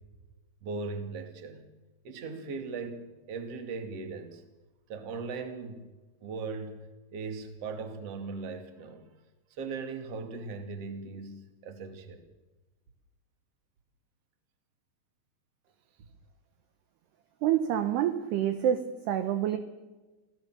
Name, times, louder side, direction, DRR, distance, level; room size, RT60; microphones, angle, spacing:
voice 1, 0.6-1.7 2.0-4.4 4.9-5.9 6.2-9.1 9.5-12.2 16.0-16.1, right 4 dB, 40° right, 7 dB, 2.4 m, -39 dB
voice 2, 17.4-19.6, right 10 dB, 70° right, 9 dB, 2.6 m, -27 dB
27.0 x 18.0 x 7.6 m, 1.2 s
omnidirectional pair, 6.0 m